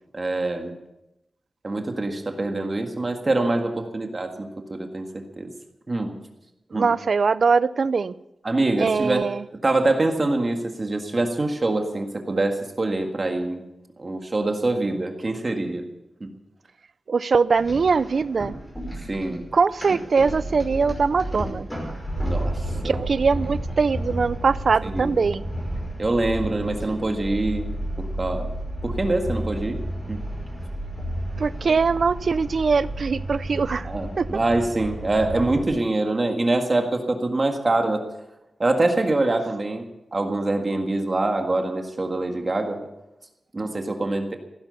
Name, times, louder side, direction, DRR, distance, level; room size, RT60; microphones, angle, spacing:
voice 1, 0.1-0.7 1.6-5.5 5.9-6.1 6.7-6.9 8.4-13.6 14.0-15.8 16.2-16.3 19.1-19.4 22.2-23.0 24.8-25.2 26.0-27.7 28.0-28.5 28.8-29.8 30.1-30.2 33.8-38.0 38.6-39.8 40.1-42.9 43.5-44.4, right 2 dB, 30° right, 4 dB, 1.7 m, -25 dB
voice 2, 6.7-8.1 8.8-9.4 17.1-18.5 19.5-21.7 22.8-25.4 31.4-33.9 34.2-34.3, right 5 dB, 55° right, 17 dB, 0.5 m, -22 dB
sound 1, 17.6-35.7, right 1 dB, 10° left, 5.4 m, -32 dB
16.0 x 11.5 x 7.0 m, 0.90 s
wide cardioid pair, 170°, 0 cm